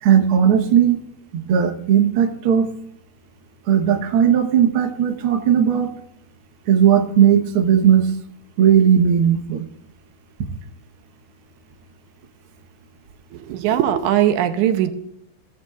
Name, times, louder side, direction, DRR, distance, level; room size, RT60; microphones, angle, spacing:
voice 1, 0.0-1.0 1.3-2.7 3.7-5.9 6.7-8.1 8.6-9.7, right 8 dB, 60° right, 3 dB, 1.5 m, -16 dB
voice 2, 13.3-14.9, right 11 dB, 85° right, 7 dB, 2.1 m, -19 dB
17.0 x 7.9 x 2.4 m, 0.78 s
omnidirectional pair, 3.4 m